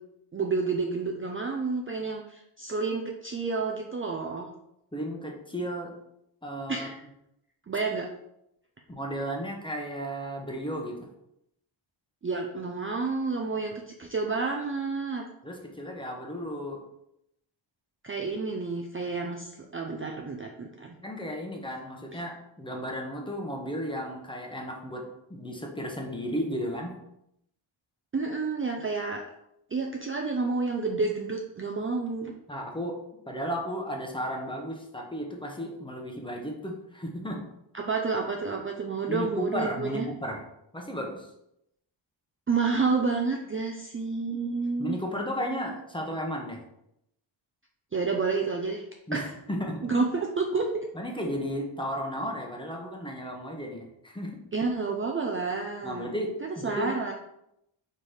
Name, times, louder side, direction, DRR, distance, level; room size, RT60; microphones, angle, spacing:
voice 1, 0.3-4.5 6.7-7.0 7.7-8.1 12.2-15.2 18.0-21.0 22.1-22.2 28.1-29.2 29.7-32.3 37.7-40.1 42.5-45.0 47.9-48.8 49.1-49.2 49.8-50.9 54.5-56.1 56.4-57.1, right 4 dB, 30° right, 1 dB, 0.5 m, -30 dB
voice 2, 4.9-5.9 6.4-6.9 8.9-11.1 15.4-16.8 21.0-26.9 32.5-33.0 33.3-37.4 39.1-40.4 40.7-41.3 44.8-46.6 49.1-49.8 50.9-54.4 55.8-56.9, equal, 10° left, 0 dB, 0.9 m, -34 dB
4.7 x 4.5 x 5.0 m, 0.80 s
wide cardioid pair, 165°, 47 cm